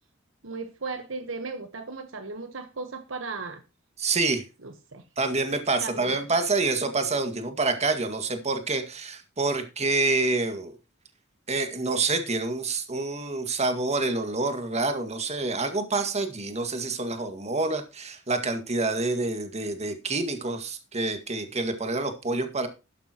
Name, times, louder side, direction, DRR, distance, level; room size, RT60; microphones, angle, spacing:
voice 1, 0.4-3.6 4.6-5.0 5.8-6.2, right 4 dB, 70° right, 1.1 m, -36 dB
voice 2, 4.0-4.4 5.2-10.7 11.5-22.7, right 3 dB, 35° right, 2.0 m, -27 dB
12.0 x 11.5 x 3.0 m
head